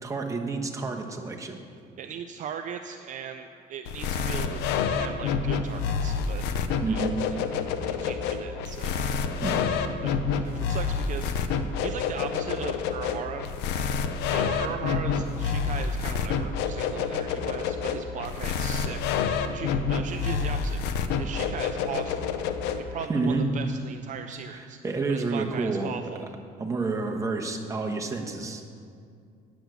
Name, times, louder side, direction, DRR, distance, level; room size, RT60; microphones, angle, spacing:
voice 1, 0.0-1.6 6.8-7.1 9.4-9.6 23.1-23.5 24.5-25.9 26.6-28.6, right 3 dB, 20° right, 1 dB, 1.1 m, -29 dB
voice 2, 2.0-4.6 4.9-6.4 6.9-7.0 7.3-9.2 9.5-9.7 10.0-13.5 14.3-20.8 21.2-22.2 22.8-24.8 25.1-26.3, right 8 dB, 50° right, 7 dB, 0.5 m, -38 dB
sound 1, 3.9-23.1, left 6 dB, 90° left, 0.7 m, -28 dB
9.8 x 8.2 x 6.1 m, 2.3 s
cardioid pair, 115°, 17 cm